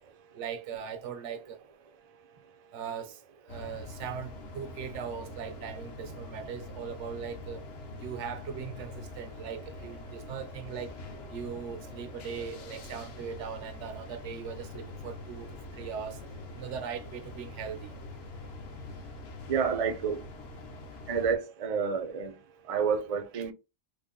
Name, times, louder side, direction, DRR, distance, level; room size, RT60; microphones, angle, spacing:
voice 1, 0.3-1.6 2.7-3.2 3.5-7.6 8.0-11.0 11.3-15.5 15.8-16.2 16.5-17.9 23.3-23.4, right 7 dB, 75° right, 0.9 m, -39 dB
sound 1, 3.5-21.4, left 2 dB, 60° left, 0.9 m, -44 dB
voice 2, 19.5-20.2 21.1-22.3 22.7-23.5, right 6 dB, 55° right, 0.4 m, -29 dB
3.4 x 2.1 x 3.5 m
omnidirectional pair, 1.3 m